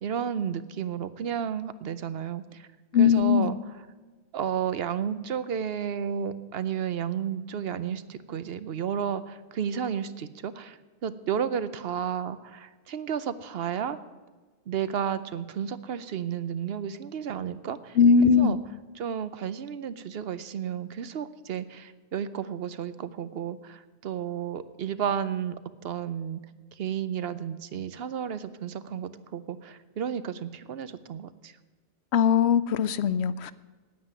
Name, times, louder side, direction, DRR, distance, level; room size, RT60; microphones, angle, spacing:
voice 1, 0.0-2.7 2.9-3.6 4.3-14.0 14.7-18.0 18.4-18.6 19.0-25.6 25.8-26.4 26.7-31.6, right 8 dB, 65° right, 14 dB, 0.9 m, -32 dB
voice 2, 2.9-3.6 18.0-18.6 32.1-33.5, left 6 dB, 75° left, 16 dB, 0.8 m, -20 dB
9.6 x 9.2 x 9.2 m, 1.3 s
omnidirectional pair, 1.1 m